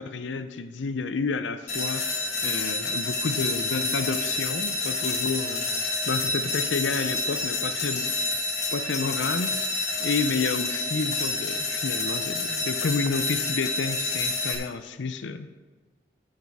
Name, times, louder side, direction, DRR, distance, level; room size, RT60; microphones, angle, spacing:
voice 1, 0.0-2.1 2.4-8.4 8.7-15.5, left 4 dB, 85° left, 11 dB, 0.6 m, -30 dB
sound 1, 1.7-14.5, left 3 dB, 35° left, 1.8 m, -28 dB
14.5 x 6.5 x 3.5 m, 1.3 s
head